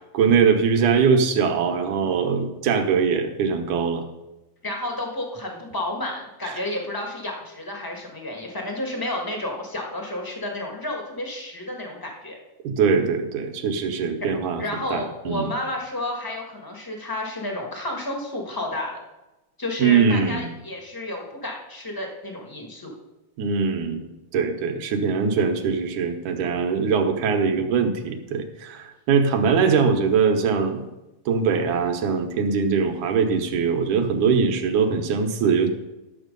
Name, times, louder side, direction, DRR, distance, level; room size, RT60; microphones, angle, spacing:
voice 1, 0.1-4.0 6.4-6.6 12.6-14.6 14.9-15.5 19.8-20.5 23.4-30.8 31.3-35.7, right 6 dB, 80° right, 5 dB, 2.5 m, -22 dB
voice 2, 4.6-12.4 14.6-19.0 19.6-22.9, left 1 dB, 30° left, 1 dB, 0.4 m, -31 dB
12.0 x 7.2 x 5.3 m, 0.99 s
omnidirectional pair, 3.4 m